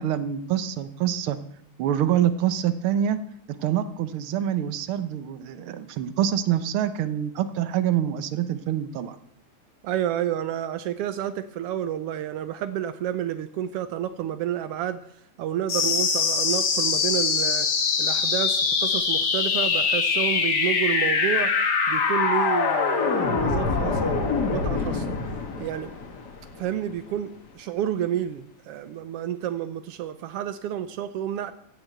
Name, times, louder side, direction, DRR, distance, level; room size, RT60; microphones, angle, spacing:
voice 1, 0.0-1.4 1.8-3.2 3.5-9.2, right 10 dB, 70° right, 12 dB, 1.3 m, -26 dB
voice 2, 9.8-15.0 15.4-17.7 18.0-21.5 21.9-25.1 25.6-25.9 26.6-31.5, right 10 dB, 90° right, 12 dB, 1.3 m, -30 dB
sound 1, 15.7-26.7, left 5 dB, 40° left, 1.6 m, -24 dB
16.0 x 7.8 x 7.8 m, 0.68 s
omnidirectional pair, 3.5 m